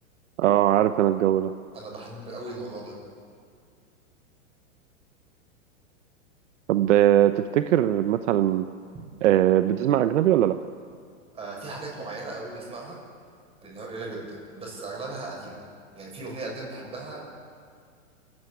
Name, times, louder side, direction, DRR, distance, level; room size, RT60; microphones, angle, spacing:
voice 1, 0.4-1.5 6.7-8.7 9.2-10.6, right 12 dB, 65° right, 10 dB, 0.9 m, -20 dB
voice 2, 1.7-2.9 11.3-13.0 13.6-15.6 15.9-17.2, right 2 dB, 15° right, -1 dB, 6.3 m, -37 dB
27.0 x 15.5 x 9.8 m, 2.2 s
supercardioid pair, 160°, 39 cm